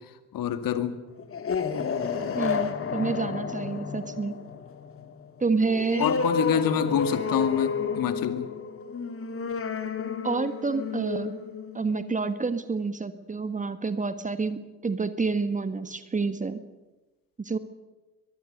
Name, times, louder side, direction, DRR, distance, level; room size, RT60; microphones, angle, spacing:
voice 1, 0.3-1.0 6.0-8.5, left 9 dB, 50° left, 10 dB, 2.2 m, -26 dB
sound 1, 1.2-12.4, left 5 dB, 30° left, 2.3 m, -31 dB
voice 2, 2.3-4.4 5.4-6.1 10.2-11.3 11.7-16.6 17.4-17.6, right 4 dB, 15° right, 12 dB, 1.5 m, -28 dB
23.0 x 22.0 x 6.7 m, 1.1 s
figure-of-eight pair, 60°, 45 cm